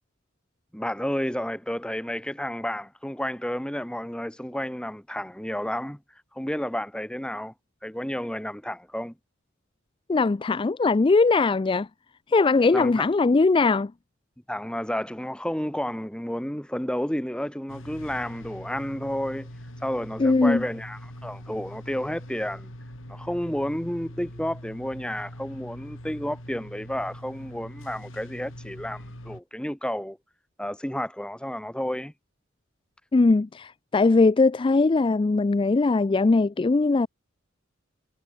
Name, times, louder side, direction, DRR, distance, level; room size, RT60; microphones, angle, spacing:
voice 1, 0.7-6.0 6.3-7.5 7.8-9.1 12.7-13.1 14.5-19.5 19.8-22.7 23.1-30.2 30.6-32.1, equal, 5° left, 1.4 m, -31 dB
voice 2, 10.1-11.9 12.3-13.9 20.2-20.6 33.1-37.1, left 3 dB, 25° left, 0.4 m, -20 dB
sound 1, 17.7-29.4, equal, 75° left, 7.6 m, -42 dB
head